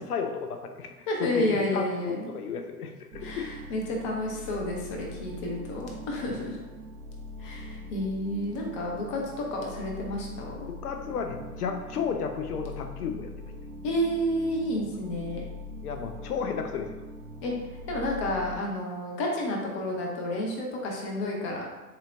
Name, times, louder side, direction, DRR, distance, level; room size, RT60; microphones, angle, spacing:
voice 1, 0.0-0.9 1.2-3.6 10.7-13.3 14.8-14.9 15.8-17.0, left 6 dB, 75° left, 5 dB, 0.6 m, -33 dB
voice 2, 1.1-2.3 3.2-6.6 7.4-10.7 13.8-15.4 17.4-17.5 17.9-21.6, left 1 dB, 25° left, -1 dB, 0.3 m, -30 dB
sound 1, 3.1-18.6, left 1 dB, 65° right, 0.5 m, -42 dB
4.1 x 2.7 x 2.5 m, 1.2 s
figure-of-eight pair, 90°, 47 cm